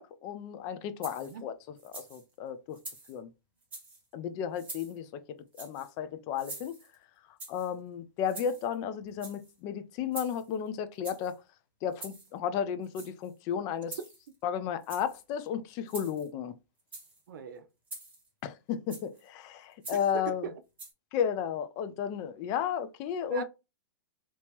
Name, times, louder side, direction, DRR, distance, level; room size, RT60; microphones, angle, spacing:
voice 1, 0.0-1.5 1.8-2.8 3.1-3.3 4.1-5.2 5.6-6.7 7.5-11.4 11.8-14.0 14.4-16.5 18.4-20.5 21.1-23.4, left 8 dB, 30° left, 0.5 m, -33 dB
sound 1, 1.0-1.4 1.8-2.2 2.7-3.2 3.6-4.0 4.6-5.0 5.5-5.9 6.4-7.0 7.4-7.7 8.2-8.8 9.1-9.5 10.1-10.5 11.0-11.3 11.9-12.3 12.8-13.3 13.9-14.4 14.8-15.2 15.9-16.3 16.8-17.2 17.9-18.3 18.9-19.2 19.8-20.2 20.8-20.9, right 2 dB, 15° right, 1.4 m, -45 dB
voice 2, 17.3-17.7 20.1-20.6 23.3-23.4, right 7 dB, 70° right, 0.5 m, -39 dB
2.9 x 2.8 x 3.4 m
hypercardioid pair, 145°, 11 cm